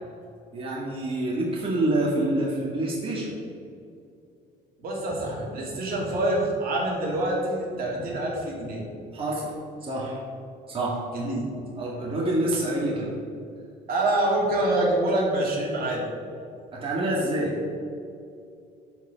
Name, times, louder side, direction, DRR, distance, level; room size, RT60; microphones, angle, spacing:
voice 1, 0.5-3.3 9.1-9.5 9.8-10.2 10.7-11.0 11.8-13.1 16.7-17.6, right 1 dB, 30° right, -4 dB, 1.7 m, -27 dB
voice 2, 4.8-8.8 11.1-11.5 13.9-16.1, right 1 dB, 60° right, -2 dB, 2.4 m, -26 dB
11.0 x 4.5 x 5.7 m, 2.5 s
cardioid pair, 110°, 17 cm